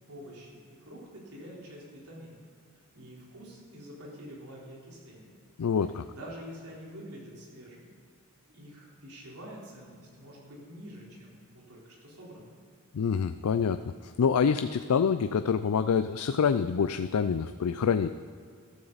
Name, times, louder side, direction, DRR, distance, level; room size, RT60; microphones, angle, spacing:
voice 1, 0.1-2.4 2.7-5.4 6.1-7.9 8.5-12.5, equal, 80° right, -4 dB, 3.9 m, -47 dB
voice 2, 5.6-6.0 12.9-18.1, left 6 dB, 80° left, 11 dB, 0.4 m, -26 dB
14.0 x 13.0 x 4.1 m, 2.2 s
head